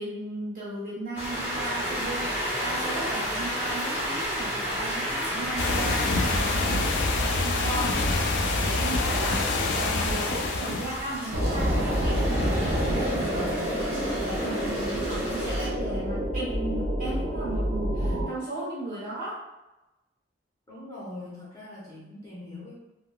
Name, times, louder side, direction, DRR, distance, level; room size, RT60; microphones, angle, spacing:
voice 1, 0.0-13.5 13.9-19.3, right 2 dB, 50° right, -9 dB, 1.4 m, -36 dB
sound 1, 1.1-15.7, equal, 10° right, 1.3 m, -33 dB
sound 2, 5.6-11.1, left 2 dB, 85° left, 0.4 m, -26 dB
sound 3, 11.3-18.3, equal, 80° right, 1.0 m, -27 dB
voice 2, 20.7-22.8, left 2 dB, 20° left, -8 dB, 0.8 m, -42 dB
3.6 x 2.2 x 2.2 m, 1.0 s
head